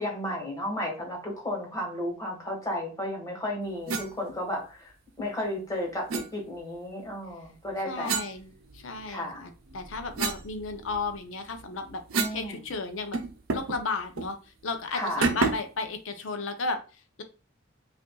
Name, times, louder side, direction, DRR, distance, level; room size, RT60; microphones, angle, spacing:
voice 1, 0.0-4.9 5.2-8.1 9.1-9.4 12.1-12.6 14.9-15.3, left 1 dB, 15° left, -1 dB, 1.4 m, -33 dB
sound 1, 3.9-4.1 6.1-6.3 8.0-9.1 9.6-12.5 12.7-12.8 13.1-13.8 14.2-14.3 15.2-15.8, right 4 dB, 90° right, 0.7 m, -31 dB
voice 2, 7.9-13.2 13.5-17.2, left 4 dB, 65° left, 7 dB, 0.6 m, -34 dB
5.1 x 2.6 x 2.3 m, 0.34 s
head